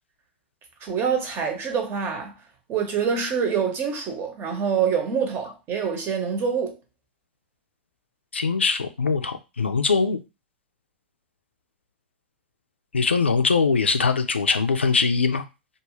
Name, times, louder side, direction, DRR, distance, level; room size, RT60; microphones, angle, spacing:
voice 1, 0.8-2.3 2.7-6.8, right 6 dB, 35° right, 0.8 m, -25 dB
voice 2, 8.3-10.2 12.9-15.4, left 4 dB, 90° left, 0.3 m, -22 dB
2.5 x 2.3 x 3.0 m
figure-of-eight pair, 95°, 6 cm